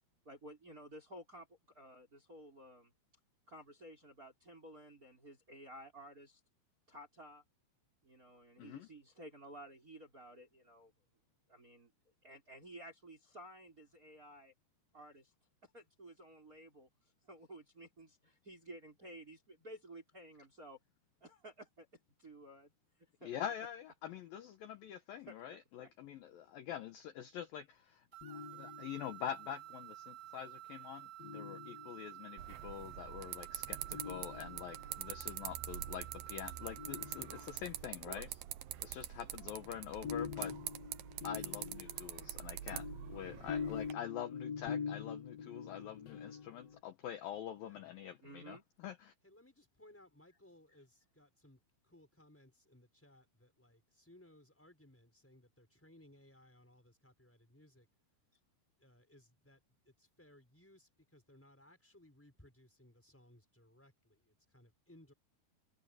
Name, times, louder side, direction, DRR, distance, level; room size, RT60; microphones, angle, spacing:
voice 1, 0.2-2.9 3.5-6.4 6.9-7.4 8.0-10.9 11.5-11.9 12.2-14.5 14.9-15.3 15.6-16.9 17.2-20.8 21.2-21.9 22.2-22.7 23.2-23.4 25.3-25.4 25.8-25.9 38.0-38.4 48.2-48.6, right 1 dB, 20° right, 5.7 m, -54 dB
voice 2, 8.6-8.9 23.2-38.3 38.8-40.5 41.2-49.1, left 10 dB, 70° left, 2.4 m, -45 dB
sound 1, 28.1-37.7, right 14 dB, 50° right, 3.4 m, -52 dB
sound 2, 28.2-29.3 31.2-32.3 33.9-35.0 36.8-37.8 39.4-46.8, left 6 dB, 45° left, 2.6 m, -45 dB
sound 3, 32.4-43.9, right 13 dB, 70° right, 2.3 m, -45 dB
voice 3, 47.6-47.9 49.2-57.9 58.8-65.1, left 1 dB, 5° left, 5.2 m, -63 dB
omnidirectional pair, 5.2 m